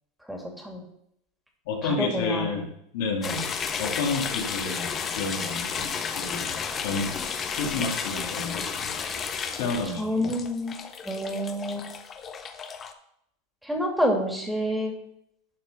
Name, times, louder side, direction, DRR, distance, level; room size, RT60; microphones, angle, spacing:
voice 1, 0.3-0.8 1.8-2.6 3.2-3.4 10.0-10.7 11.0-11.9 13.6-14.9, equal, ahead, 1 dB, 2.6 m, -28 dB
voice 2, 1.7-2.7 2.9-3.4 3.8-4.9 5.2-5.9 6.2-6.5 6.8-7.1 7.5-8.8 9.5-10.3, left 4 dB, 70° left, 1 dB, 2.6 m, -30 dB
sound 1, 3.2-12.9, left 6 dB, 30° left, 1.1 m, -32 dB
11.5 x 4.7 x 5.5 m, 0.75 s
hypercardioid pair, 100°, 0 cm